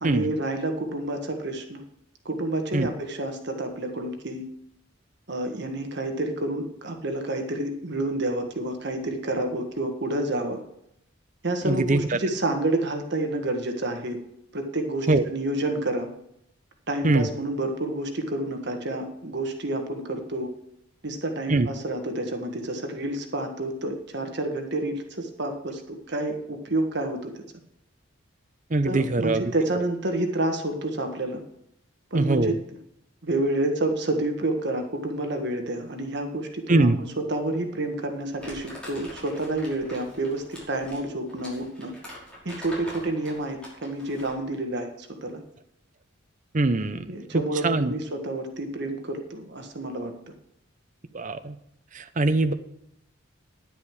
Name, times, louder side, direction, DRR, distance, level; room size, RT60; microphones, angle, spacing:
voice 1, 0.0-1.8 2.2-4.4 5.3-10.6 11.4-14.2 14.5-16.1 16.9-20.5 21.0-27.4 28.8-31.4 32.1-32.5 33.2-41.9 42.4-45.4 47.1-50.1, right 2 dB, 60° right, 5 dB, 1.6 m, -29 dB
voice 2, 11.6-12.2 15.1-15.2 17.0-17.3 21.5-21.7 28.7-29.4 29.7-29.8 32.1-32.6 36.7-37.0 46.5-47.1 47.3-47.9 51.1-51.5 51.9-52.5, right 2 dB, 40° right, 9 dB, 0.7 m, -22 dB
Crumpling crinkling, 38.4-44.5, left 1 dB, 5° left, 5.6 m, -43 dB
10.5 x 10.0 x 4.8 m, 0.76 s
head